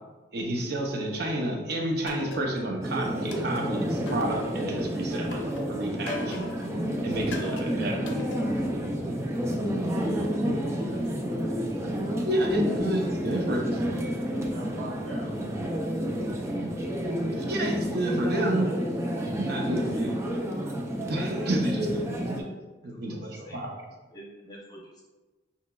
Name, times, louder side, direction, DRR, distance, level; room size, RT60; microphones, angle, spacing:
voice 1, 0.3-5.4 5.7-6.4 7.0-8.2 12.2-13.6 17.2-18.7 19.4-20.1 21.1-22.6 22.8-23.7, right 1 dB, 55° right, 1 dB, 0.6 m, -30 dB
sound 1, 2.1-2.8 3.3-4.8 5.3-6.7 7.3-8.8, left 2 dB, 70° left, 0.6 m, -38 dB
sound 2, 2.1-18.3, left 1 dB, 30° right, 1.0 m, -47 dB
sound 3, 2.8-22.4, equal, 15° right, 0.3 m, -30 dB
voice 2, 9.8-11.7 12.4-12.8 13.3-13.6 14.3-15.5 16.7-17.2 18.6-18.9, right 1 dB, 85° right, -3 dB, 1.0 m, -45 dB
voice 3, 22.8-23.6 24.1-25.0, right 1 dB, 20° left, -2 dB, 0.7 m, -48 dB
5.6 x 2.8 x 2.2 m, 1.2 s
head